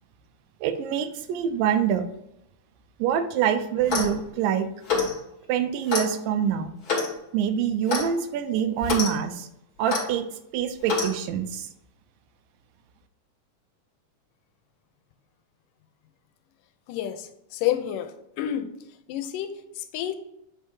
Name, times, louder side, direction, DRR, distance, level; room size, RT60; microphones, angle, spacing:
voice 1, 0.6-2.0 3.0-4.7 5.5-6.7 7.3-9.5 9.8-11.7, right 9 dB, 90° right, 9 dB, 2.4 m, -25 dB
Clock, 3.8-4.2 4.9-5.2 5.9-6.1 6.9-7.1 7.9-8.1 8.8-9.1 9.9-10.1 10.9-11.1, left 4 dB, 40° left, 1.6 m, -26 dB
voice 2, 16.9-18.7 19.1-20.1, left 11 dB, 85° left, 9 dB, 2.2 m, -30 dB
8.2 x 3.4 x 4.6 m, 0.82 s
omnidirectional pair, 3.8 m